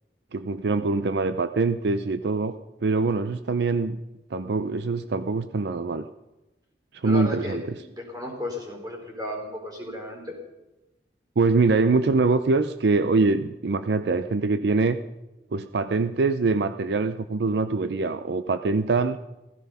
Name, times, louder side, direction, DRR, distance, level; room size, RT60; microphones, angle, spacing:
voice 1, 0.3-4.0 4.3-6.0 6.9-7.8 11.4-15.0 15.5-19.2, right 3 dB, 70° right, 11 dB, 0.5 m, -24 dB
voice 2, 7.0-10.4, left 1 dB, 20° right, 0 dB, 4.4 m, -34 dB
15.5 x 15.5 x 5.6 m, 1.0 s
head